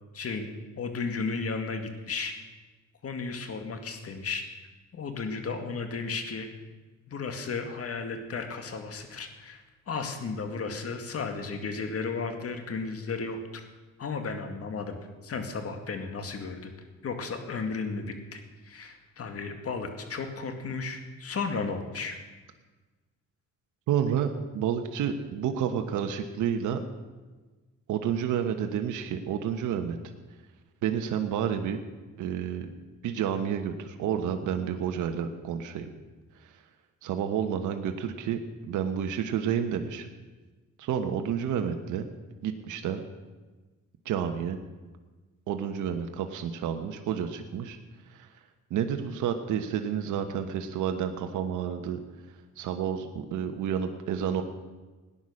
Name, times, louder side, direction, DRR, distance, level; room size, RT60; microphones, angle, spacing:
voice 1, 0.1-0.5 0.8-2.3 3.0-4.4 4.9-6.5 7.1-13.6 14.0-15.0 15.2-16.7 17.0-22.2, left 4 dB, 50° left, 6 dB, 2.2 m, -34 dB
voice 2, 23.9-26.8 27.9-30.0 30.8-31.8 32.2-32.7 33.0-35.9 37.0-40.1 40.8-42.0 42.4-43.0 44.0-44.6 45.5-47.8 48.1-48.3 48.7-52.0 52.6-54.4, right 8 dB, 80° right, 6 dB, 1.2 m, -30 dB
18.0 x 10.0 x 6.4 m, 1.3 s
cardioid pair, 90°, 30 cm